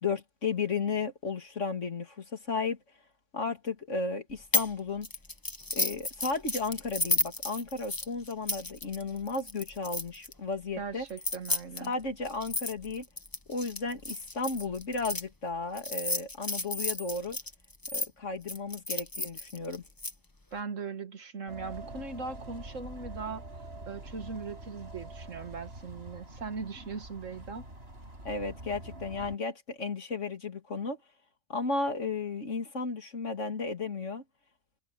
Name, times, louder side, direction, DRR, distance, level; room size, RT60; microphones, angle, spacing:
voice 1, 0.0-2.8 3.3-5.1 5.7-11.0 11.8-13.1 13.5-17.4 17.9-19.8 28.2-31.0 31.5-34.2, left 4 dB, 75° left, 2.8 m, -34 dB
sound 1, 4.5-4.7 5.0-10.3 11.1-15.2 15.8-18.1 18.5-20.1, left 2 dB, 15° left, 1.3 m, -33 dB
voice 2, 10.8-11.9 20.5-23.5 23.9-27.7, right 4 dB, 85° right, 2.2 m, -39 dB
sound 2, 21.5-29.4, right 2 dB, 55° right, 8.0 m, -45 dB
omnidirectional pair, 1.3 m